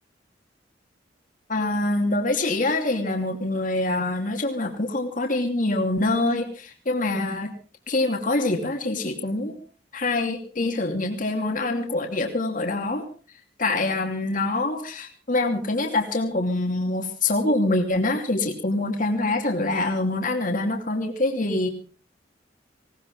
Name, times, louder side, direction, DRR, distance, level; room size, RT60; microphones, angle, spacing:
voice 1, 1.5-7.5 7.9-9.6 9.9-13.1 13.6-21.7, left 2 dB, 45° left, 4 dB, 2.9 m, -25 dB
19.5 x 18.5 x 3.7 m, 0.38 s
head